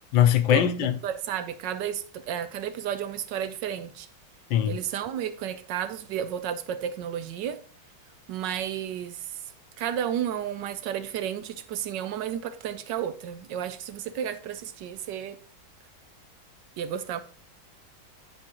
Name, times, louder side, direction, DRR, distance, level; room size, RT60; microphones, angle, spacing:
voice 1, 0.1-1.0 4.5-4.8, left 10 dB, 80° left, 1.4 m, -21 dB
voice 2, 1.0-4.1 4.7-7.6 8.3-9.2 9.8-15.4 16.8-17.2, right 9 dB, 70° right, 1.2 m, -32 dB
9.9 x 5.4 x 2.9 m
omnidirectional pair, 2.2 m